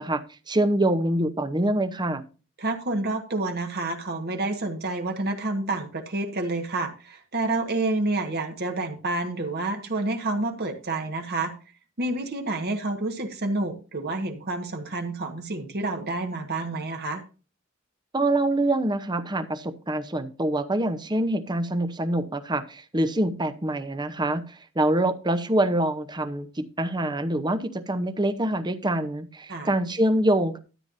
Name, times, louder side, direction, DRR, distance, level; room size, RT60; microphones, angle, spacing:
voice 1, 0.0-2.2 18.1-30.6, right 1 dB, 20° right, 10 dB, 0.9 m, -25 dB
voice 2, 2.6-11.5 12.0-17.2 29.5-29.7, right 2 dB, 50° right, 4 dB, 1.4 m, -29 dB
13.0 x 9.1 x 2.7 m, 0.34 s
head